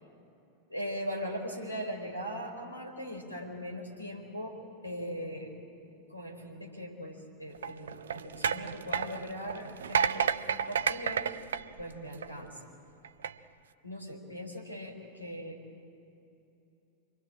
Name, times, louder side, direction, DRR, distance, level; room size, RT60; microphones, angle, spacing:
voice 1, 0.7-4.6 4.8-5.5 5.8-11.3 11.8-12.6 13.8-15.5, equal, 85° left, 3 dB, 4.3 m, -40 dB
sound 1, 7.5-12.5 13.0-13.3, right 7 dB, 65° right, 0.6 m, -31 dB
26.0 x 23.0 x 8.8 m, 2.9 s
figure-of-eight pair, 90°, 0 cm